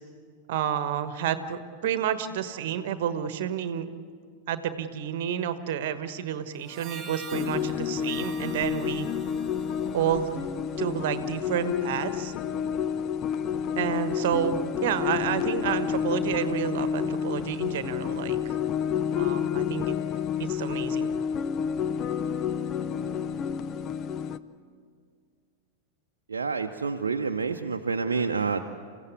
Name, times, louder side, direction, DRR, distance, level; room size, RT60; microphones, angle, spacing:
voice 1, 0.5-3.9 4.5-9.1 9.9-10.5 10.8-12.3 13.8-18.6 19.2-19.9 20.4-21.1, right 9 dB, 50° right, 11 dB, 1.3 m, -30 dB
Harmonica, 6.6-11.2, right 4 dB, 25° right, 1.3 m, -46 dB
sound 1, 7.3-24.4, left 8 dB, 35° left, 0.7 m, -29 dB
voice 2, 26.3-28.6, right 5 dB, 70° right, 4 dB, 0.7 m, -28 dB
28.0 x 16.0 x 8.3 m, 2.1 s
figure-of-eight pair, 90°, 0 cm